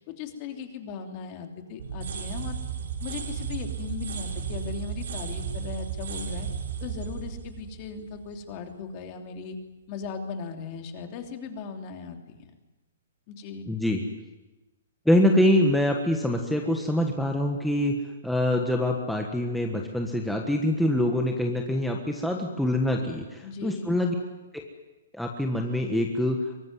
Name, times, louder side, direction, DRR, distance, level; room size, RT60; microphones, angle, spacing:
voice 1, 0.0-2.6 3.0-6.5 6.8-9.6 9.9-12.5 13.3-13.7 23.4-23.9, left 6 dB, 30° left, 4 dB, 3.1 m, -38 dB
sound 1, 1.8-8.6, right 7 dB, 75° right, 6.3 m, -34 dB
voice 2, 13.7-14.0 15.0-17.9 18.2-24.1 25.1-26.4, left 1 dB, ahead, 1 dB, 1.5 m, -24 dB
23.5 x 19.5 x 9.6 m, 1.1 s
hypercardioid pair, 160°, 0 cm